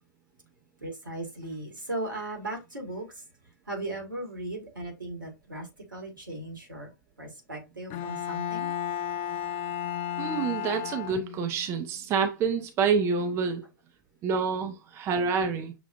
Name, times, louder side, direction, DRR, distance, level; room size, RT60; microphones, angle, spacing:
voice 1, 0.8-3.1 3.7-6.9 7.2-8.7, right 2 dB, 80° right, 1.8 m, -37 dB
Bowed string instrument, 7.9-11.6, left 10 dB, 35° left, 0.4 m, -33 dB
voice 2, 10.2-13.6 14.2-15.7, right 5 dB, 25° right, 0.6 m, -27 dB
6.6 x 2.4 x 2.5 m
figure-of-eight pair, 100°, 11 cm